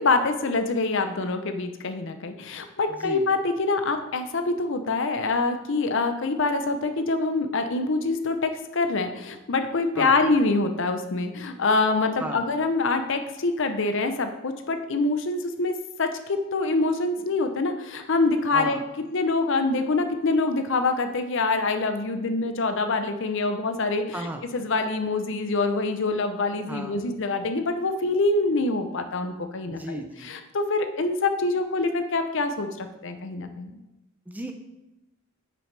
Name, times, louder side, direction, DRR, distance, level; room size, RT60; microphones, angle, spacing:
voice 1, 0.0-18.8 19.1-33.7, left 3 dB, 60° left, 7 dB, 0.6 m, -25 dB
voice 2, 29.7-30.3 34.3-34.5, right 1 dB, 10° right, 5 dB, 0.5 m, -34 dB
7.7 x 6.3 x 3.3 m, 0.98 s
head